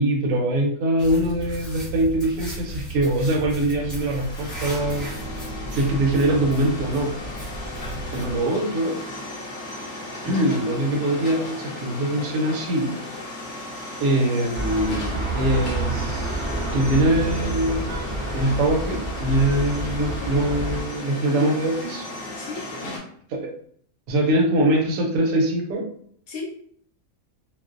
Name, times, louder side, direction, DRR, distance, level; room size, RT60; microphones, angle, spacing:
voice 1, 0.0-5.1 5.7-7.1 8.1-9.0 10.2-12.9 14.0-16.4 16.7-17.9 18.3-22.1 23.3-23.5 24.1-25.9, right 1 dB, 75° right, 1 dB, 1.0 m, -23 dB
sound 1, 1.0-8.4, right 1 dB, ahead, 0.8 m, -35 dB
sound 2, 3.8-23.0, left 2 dB, 50° left, 0.6 m, -36 dB
sound 3, 14.5-20.8, right 2 dB, 35° right, 0.4 m, -28 dB
voice 2, 19.8-20.5 22.4-22.6 26.3-26.5, left 4 dB, 80° left, -1 dB, 1.0 m, -34 dB
2.4 x 2.0 x 2.4 m, 0.63 s
omnidirectional pair, 1.5 m